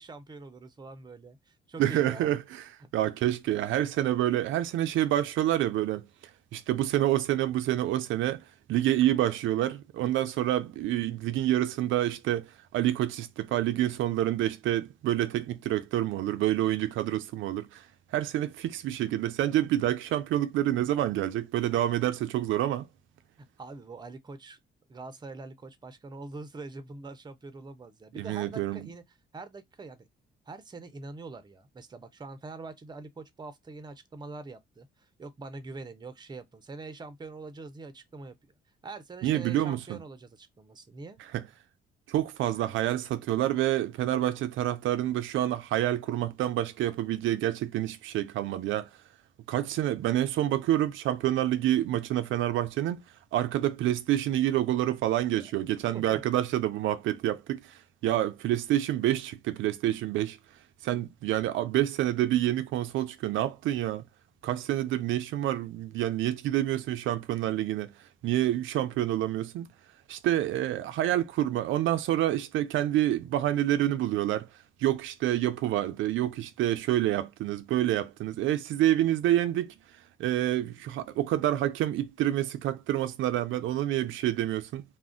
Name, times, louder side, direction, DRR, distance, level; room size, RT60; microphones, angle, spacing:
voice 1, 0.0-2.4 2.8-2.9 23.4-24.6 24.9-29.0 29.3-30.1 30.5-38.5 38.8-41.2 55.3-55.5 55.9-56.2, right 3 dB, 20° right, 0.5 m, -44 dB
voice 2, 1.8-2.6 2.9-6.1 6.5-8.4 8.7-17.9 18.1-22.9 28.2-28.9 39.2-40.0 41.3-41.4 42.1-48.9 49.5-53.0 53.3-60.4 60.8-64.0 64.4-67.9 68.2-69.7 70.1-74.5 74.8-79.7 80.2-84.8, right 13 dB, 80° right, 0.4 m, -28 dB
2.4 x 2.1 x 3.6 m
cardioid pair, 90°, 20 cm